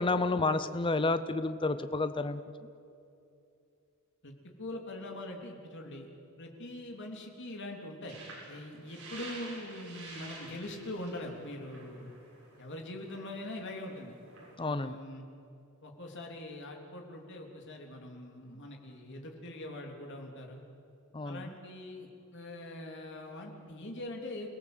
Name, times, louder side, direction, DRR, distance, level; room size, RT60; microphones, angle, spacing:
voice 1, 0.0-2.4 14.6-15.0 21.1-21.5, left 3 dB, 20° left, 11 dB, 0.6 m, -30 dB
voice 2, 4.2-6.1 6.4-8.2 8.5-12.1 12.6-14.2 14.6-15.2 15.8-20.6 21.2-24.5, left 1 dB, 55° left, 2 dB, 3.3 m, -43 dB
sound 1, 8.1-14.6, right 2 dB, 70° right, 7.1 m, -50 dB
29.0 x 17.5 x 8.0 m, 2.6 s
head